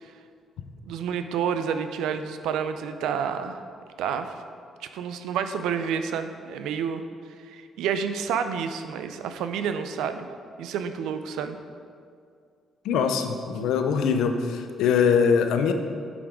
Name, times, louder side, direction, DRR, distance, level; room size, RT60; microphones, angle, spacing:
voice 1, 0.9-3.6 4.0-4.3 4.9-7.0 7.5-10.3 10.6-11.6, right 7 dB, 90° right, 9 dB, 0.4 m, -29 dB
voice 2, 12.8-15.7, left 6 dB, 85° left, 7 dB, 0.5 m, -22 dB
8.5 x 3.6 x 5.0 m, 2.2 s
cardioid pair, 90°, 0 cm